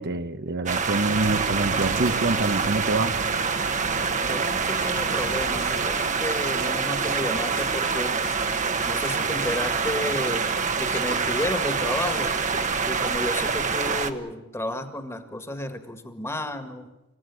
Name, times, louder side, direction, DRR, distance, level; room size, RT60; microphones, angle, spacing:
voice 1, 0.0-3.2, right 2 dB, 50° right, 9 dB, 1.0 m, -26 dB
sound 1, 0.7-14.1, right 5 dB, 35° right, 1.3 m, -26 dB
sound 2, 1.1-8.3, right 3 dB, 90° right, 1.4 m, -38 dB
voice 2, 4.3-8.3 8.8-10.5 10.8-12.3 12.9-16.9, left 1 dB, 10° left, 8 dB, 1.9 m, -32 dB
sound 3, 4.7-4.8 5.1-5.3 5.6-5.7 6.6-6.7 7.0-7.2 7.5-7.9 8.2-8.6 8.9-9.1 9.4-9.6 10.5-10.6 10.9-11.0 11.3-11.8 12.1-12.2, left 7 dB, 65° left, 3.7 m, -45 dB
27.5 x 16.0 x 9.6 m, 1.0 s
head